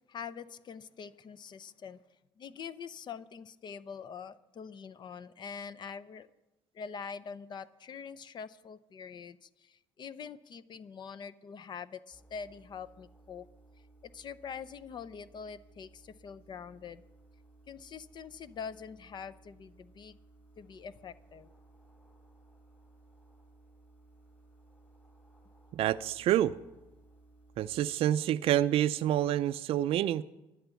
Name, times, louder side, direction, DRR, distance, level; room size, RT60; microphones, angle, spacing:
voice 1, 0.1-2.0 2.4-6.3 6.7-13.5 14.0-17.0 17.7-20.2 20.6-21.5, left 6 dB, 45° left, 16 dB, 0.6 m, -44 dB
sound 1, 12.1-27.9, right 2 dB, 20° left, 4.2 m, -60 dB
voice 2, 25.7-26.6 27.6-30.2, right 12 dB, 65° right, 10 dB, 0.4 m, -27 dB
12.5 x 10.0 x 7.1 m, 1.0 s
cardioid pair, 105°, 11 cm